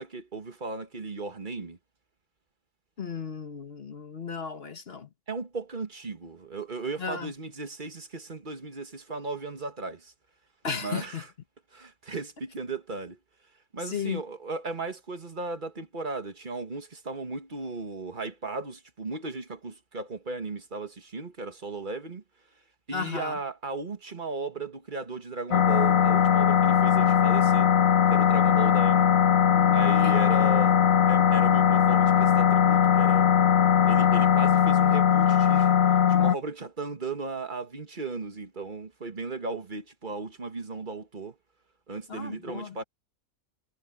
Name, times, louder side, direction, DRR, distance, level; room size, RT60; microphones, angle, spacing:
voice 1, 0.0-1.8 5.3-10.1 10.8-11.3 11.7-13.2 13.7-22.2 22.9-27.7 28.1-29.1 29.7-30.8 31.1-33.3 33.8-35.7 36.1-41.3 41.9-42.8, right 3 dB, 35° right, 1.8 m, -36 dB
voice 2, 3.0-5.1 7.0-7.3 10.6-11.2 13.9-14.2 22.9-23.4 28.4-28.6 29.5-30.7 42.1-42.8, left 6 dB, 45° left, 1.6 m, -35 dB
sound 1, 25.5-36.4, left 8 dB, 75° left, 1.4 m, -20 dB
omnidirectional pair, 1.4 m